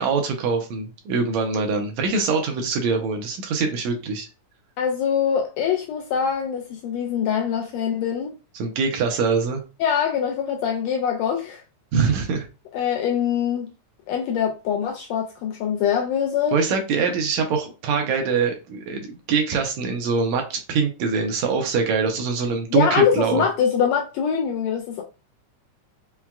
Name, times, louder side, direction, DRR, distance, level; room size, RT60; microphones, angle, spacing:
voice 1, 0.0-4.3 8.6-9.6 11.9-12.5 16.5-23.4, right 5 dB, 75° right, 1.9 m, -23 dB
voice 2, 4.8-8.3 9.8-11.6 12.7-13.7 14.1-16.6 22.7-25.0, left 8 dB, 80° left, 1.6 m, -23 dB
5.7 x 2.2 x 2.3 m
omnidirectional pair, 3.4 m